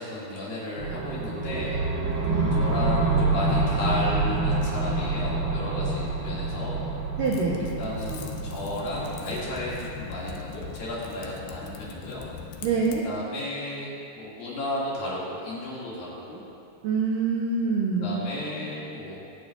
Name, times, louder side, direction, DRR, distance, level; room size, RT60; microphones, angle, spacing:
voice 1, 0.0-1.8 2.6-6.9 7.8-12.3 12.6-12.7 13.0-16.4 18.0-19.2, left 1 dB, 55° left, -8 dB, 3.8 m, -33 dB
sound 1, 0.8-10.8, right 2 dB, 65° right, 3.8 m, -27 dB
voice 2, 2.3-2.6 7.2-7.7 12.6-13.0 16.8-18.2, right 4 dB, 85° right, -3 dB, 1.9 m, -25 dB
Typing, 7.2-13.0, left 6 dB, 75° left, 2.5 m, -41 dB
25.0 x 9.1 x 2.5 m, 2.7 s
omnidirectional pair, 5.3 m